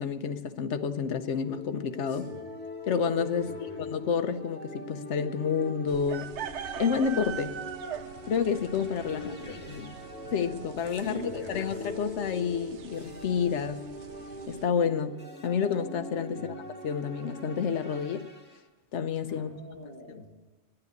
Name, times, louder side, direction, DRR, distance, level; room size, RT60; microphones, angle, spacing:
voice 1, 0.0-2.3 2.9-3.5 3.9-6.3 6.8-7.6 8.3-9.2 9.7-9.9 10.3-13.8 14.5-16.5 16.8-18.3 18.9-19.5, left 6 dB, 80° left, 9 dB, 1.1 m, -29 dB
sound 1, 1.3-18.6, left 1 dB, 10° left, 1.7 m, -42 dB
voice 2, 2.1-2.5 3.3-3.9 9.1-9.8 10.9-12.1 16.3-16.6 19.3-20.3, left 2 dB, 35° left, -6 dB, 3.1 m, -43 dB
sound 2, 5.9-14.7, right 8 dB, 80° right, 1.0 m, -43 dB
10.5 x 9.8 x 9.5 m, 1.2 s
omnidirectional pair, 1.2 m